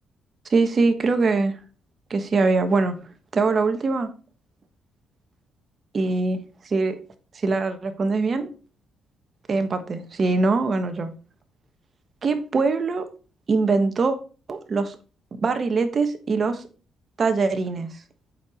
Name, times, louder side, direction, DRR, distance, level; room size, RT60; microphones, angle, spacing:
voice 1, 0.5-1.5 2.1-2.9 3.3-4.1 5.9-6.4 6.7-6.9 7.4-8.5 9.5-11.1 12.2-13.1 13.5-14.2 14.5-15.0 15.4-16.6 17.2-17.9, right 3 dB, 40° right, 7 dB, 1.4 m, -22 dB
8.1 x 4.8 x 5.0 m, 0.36 s
cardioid pair, 90°, 0 cm